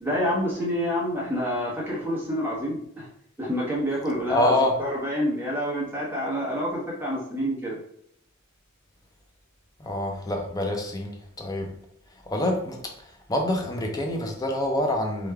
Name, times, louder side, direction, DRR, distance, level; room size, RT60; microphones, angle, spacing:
voice 1, 0.0-3.1 3.4-7.8, equal, 10° right, -5 dB, 1.0 m, -28 dB
voice 2, 4.3-4.7 9.8-11.7 12.3-15.3, left 1 dB, 15° left, 2 dB, 0.5 m, -26 dB
3.2 x 2.3 x 3.3 m, 0.70 s
head